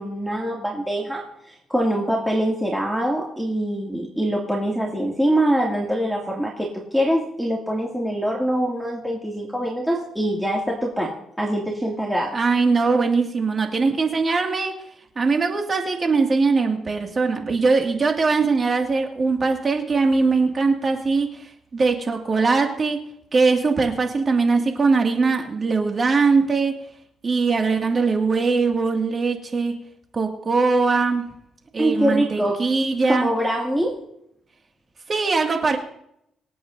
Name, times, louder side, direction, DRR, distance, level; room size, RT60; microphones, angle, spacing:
voice 1, 0.0-12.4 31.8-32.6 33.1-34.0, right 1 dB, 5° right, -4 dB, 2.4 m, -24 dB
voice 2, 12.3-14.8 15.2-23.0 23.3-26.8 27.2-29.8 30.1-31.3 31.7-33.3 35.1-35.8, right 4 dB, 35° right, 3 dB, 2.2 m, -21 dB
25.5 x 8.6 x 2.7 m, 0.75 s
cardioid pair, 90°, 0 cm